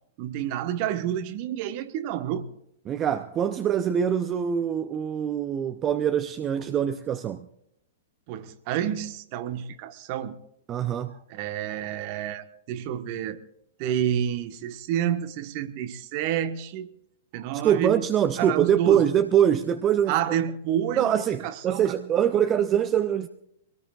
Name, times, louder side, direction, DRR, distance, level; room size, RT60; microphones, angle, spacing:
voice 1, 0.2-2.5 8.3-10.4 11.3-13.4 13.8-16.9 17.3-18.0 18.4-19.1 20.1-22.0, right 10 dB, 40° right, 1.2 m, -29 dB
voice 2, 2.9-7.5 10.7-11.2 17.6-20.1 20.9-23.3, right 9 dB, 25° right, 0.7 m, -24 dB
24.0 x 18.0 x 2.4 m
figure-of-eight pair, 105°, 0 cm